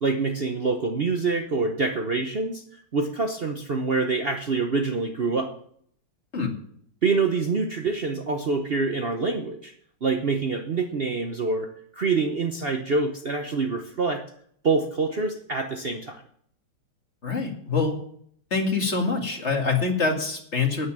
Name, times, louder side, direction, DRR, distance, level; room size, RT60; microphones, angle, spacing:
voice 1, 0.0-5.5 7.0-9.7 10.0-11.7 11.9-14.2 14.6-16.2, right 4 dB, 85° right, 5 dB, 0.5 m, -26 dB
voice 2, 17.2-18.0 18.5-20.9, left 4 dB, 30° left, 2 dB, 2.1 m, -25 dB
9.7 x 9.6 x 7.5 m, 0.64 s
omnidirectional pair, 2.4 m